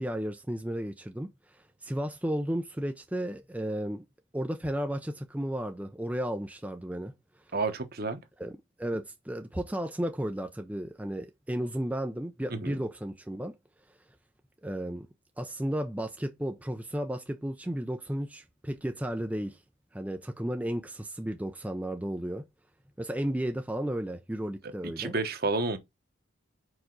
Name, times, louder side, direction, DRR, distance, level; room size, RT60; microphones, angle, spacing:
voice 1, 0.0-4.0 4.3-7.1 8.4-13.5 14.6-15.1 15.4-19.6 19.9-22.5 23.0-25.1, right 1 dB, 5° right, 0.5 m, -33 dB
voice 2, 7.5-8.2 12.5-12.8 24.6-25.8, right 3 dB, 50° right, 1.0 m, -31 dB
5.0 x 4.8 x 3.9 m
head